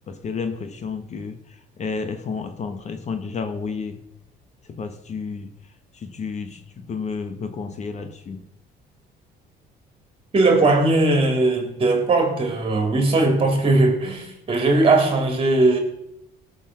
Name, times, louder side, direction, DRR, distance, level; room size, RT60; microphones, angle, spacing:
voice 1, 0.1-4.0 4.7-5.5 5.9-8.5, left 5 dB, 45° left, 8 dB, 1.3 m, -31 dB
voice 2, 10.3-15.8, right 2 dB, 35° right, 4 dB, 3.4 m, -19 dB
17.5 x 6.7 x 6.3 m, 0.82 s
cardioid pair, 110°, 17 cm